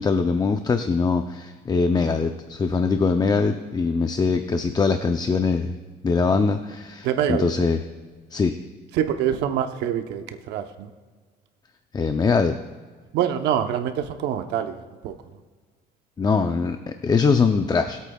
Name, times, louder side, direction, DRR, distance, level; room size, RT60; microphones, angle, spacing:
voice 1, 0.0-5.8 6.0-7.8 8.3-8.6 11.9-12.6 16.2-18.0, left 4 dB, 25° left, 7 dB, 0.5 m, -22 dB
voice 2, 7.0-7.5 8.9-10.9 13.1-15.1, right 9 dB, 85° right, 7 dB, 0.9 m, -25 dB
22.0 x 8.3 x 2.3 m, 1.5 s
cardioid pair, 110°, 17 cm